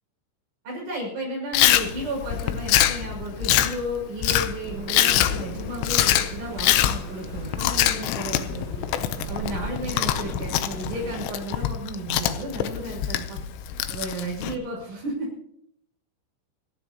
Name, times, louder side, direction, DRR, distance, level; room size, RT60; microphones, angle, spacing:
voice 1, 0.6-8.6 9.3-13.4 13.9-15.5, right 1 dB, 50° right, -2 dB, 7.6 m, -33 dB
Chewing mastication, 1.5-14.5, left 12 dB, 85° left, 3.3 m, -24 dB
sound 1, 4.6-11.3, right 4 dB, 85° right, 6.4 m, -39 dB
30.0 x 11.0 x 3.0 m, 0.74 s
omnidirectional pair, 5.7 m